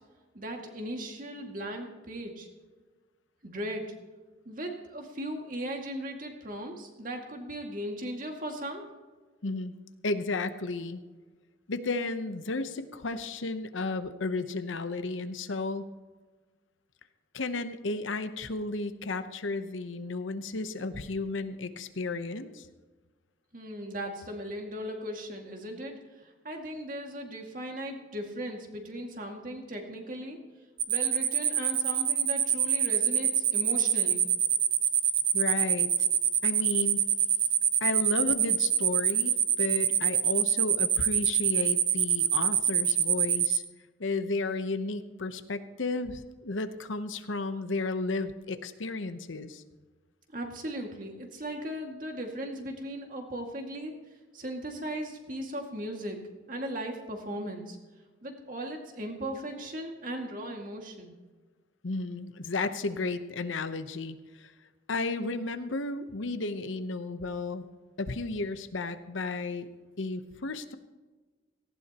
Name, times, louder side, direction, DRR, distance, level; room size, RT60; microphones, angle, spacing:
voice 1, 0.3-2.5 3.4-3.9 4.5-8.8 23.5-30.4 30.9-34.3 50.3-53.9 54.3-56.2 56.5-57.8 58.2-61.2, right 1 dB, 45° right, 2 dB, 2.1 m, -37 dB
voice 2, 9.4-9.7 10.0-11.0 11.7-15.9 17.3-22.7 35.3-36.1 36.4-37.1 37.8-43.6 44.0-49.6 61.8-64.5 64.9-67.7 68.0-69.7 70.0-70.8, left 3 dB, 90° left, 10 dB, 0.9 m, -33 dB
sound 1, 30.8-43.6, right 9 dB, 30° right, 0.6 m, -25 dB
18.0 x 16.0 x 3.0 m, 1.3 s
head